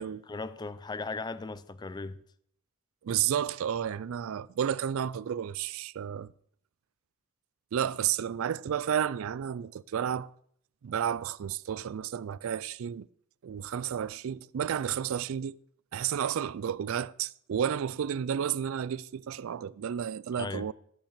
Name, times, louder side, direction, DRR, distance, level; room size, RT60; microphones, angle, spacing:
voice 1, 0.0-2.2 20.4-20.7, left 3 dB, 20° left, 0.4 m, -37 dB
voice 2, 3.0-6.3 7.7-10.3 10.8-13.1 13.4-15.6 15.9-20.7, right 9 dB, 65° right, 0.3 m, -31 dB
13.0 x 5.9 x 6.6 m
head